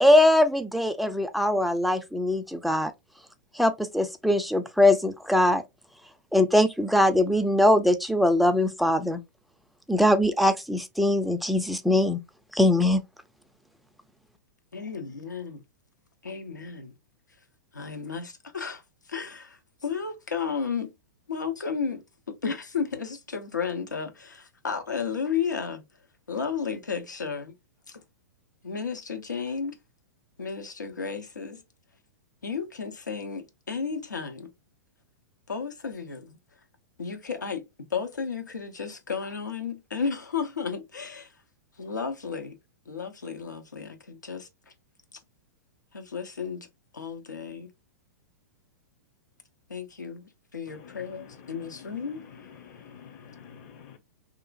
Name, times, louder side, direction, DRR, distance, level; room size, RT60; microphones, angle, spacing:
voice 1, 0.0-2.9 3.6-5.6 6.3-9.2 9.9-12.2 12.5-13.0, left 1 dB, ahead, 0.3 m, -22 dB
voice 2, 14.7-15.6 16.2-16.9 17.7-20.9 21.3-25.8 26.3-27.6 27.9-28.0 28.6-29.8 30.4-31.6 32.4-34.5 35.5-36.4 37.0-41.3 41.8-42.6 42.9-44.7 45.9-46.7 46.9-47.7 49.7-52.8, left 6 dB, 80° left, 0.7 m, -33 dB
voice 3, 50.7-51.9 52.6-54.0, left 7 dB, 50° left, 0.8 m, -48 dB
2.8 x 2.4 x 2.4 m
figure-of-eight pair, 105°, 10 cm